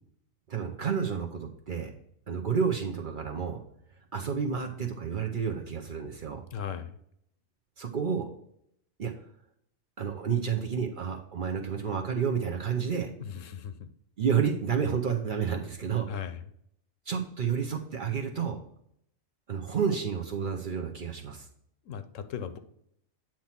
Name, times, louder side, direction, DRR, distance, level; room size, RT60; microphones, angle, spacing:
voice 1, 0.5-1.9 2.3-3.6 4.1-6.4 7.8-8.3 9.0-9.1 10.0-13.1 14.2-16.1 17.1-18.6 19.5-21.5, right 7 dB, 50° right, 2 dB, 0.7 m, -30 dB
voice 2, 6.5-6.9 13.2-13.7 16.1-16.4 21.9-22.6, left 8 dB, 75° left, 10 dB, 1.0 m, -37 dB
8.7 x 3.0 x 5.7 m, 0.72 s
omnidirectional pair, 1.4 m